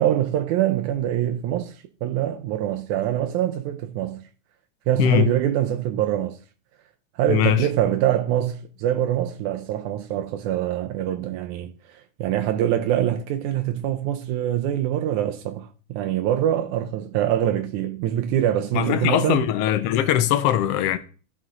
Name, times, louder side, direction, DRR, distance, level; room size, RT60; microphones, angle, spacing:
voice 1, 0.0-1.8 2.0-4.2 4.9-6.4 7.2-11.7 12.2-19.5, right 11 dB, 85° right, 2.1 m, -24 dB
voice 2, 5.0-5.3 7.3-7.7 18.7-21.0, left 11 dB, 75° left, 1.5 m, -21 dB
14.0 x 5.1 x 3.8 m
omnidirectional pair, 3.4 m